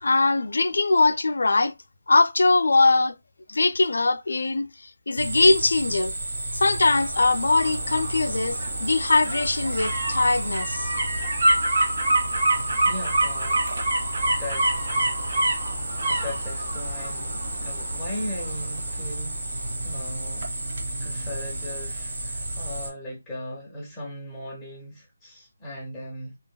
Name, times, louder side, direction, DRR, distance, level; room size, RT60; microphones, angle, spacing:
voice 1, 0.0-1.7 2.1-3.1 3.5-4.7 5.1-6.1 6.5-10.9, left 3 dB, 70° left, 0.3 m, -21 dB
sound 1, 5.2-22.9, right 2 dB, 55° right, 1.7 m, -32 dB
sound 2, 6.9-19.7 20.1-20.2, right 1 dB, 80° right, 1.4 m, -27 dB
voice 2, 12.9-13.7 14.2-14.7 16.1-20.4 21.0-26.4, left 1 dB, 10° left, 0.5 m, -37 dB
3.0 x 2.8 x 2.2 m
hypercardioid pair, 175°, 0 cm